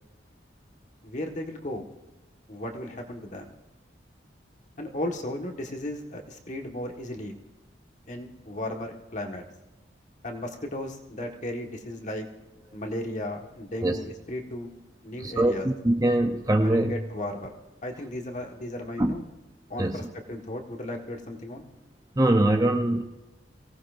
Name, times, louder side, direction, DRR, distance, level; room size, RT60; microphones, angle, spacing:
voice 1, 1.0-1.8 2.5-3.5 4.8-7.4 8.1-9.4 10.2-12.3 12.7-14.7 15.0-15.7 16.6-17.5 17.8-19.2 19.7-21.6, left 1 dB, 40° left, 2 dB, 1.6 m, -35 dB
voice 2, 15.2-16.9 19.0-19.2 19.8-20.0 22.2-23.0, right 1 dB, 20° right, 5 dB, 0.7 m, -23 dB
24.0 x 17.5 x 2.6 m, 1.0 s
head